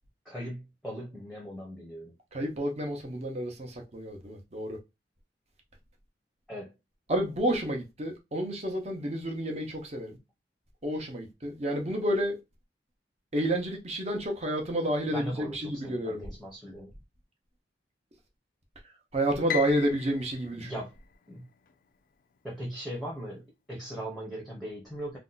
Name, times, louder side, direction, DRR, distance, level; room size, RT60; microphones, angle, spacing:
voice 1, 0.2-2.1 6.5-6.8 15.1-16.9 20.5-20.9 21.3-21.5 22.4-25.2, equal, ahead, 0.8 m, -39 dB
voice 2, 2.3-4.8 7.1-10.2 10.8-12.4 13.3-16.2 19.1-20.7, right 1 dB, 35° right, 0.8 m, -30 dB
Piano, 19.5-21.7, left 11 dB, 50° left, 0.3 m, -38 dB
2.8 x 2.2 x 3.9 m
head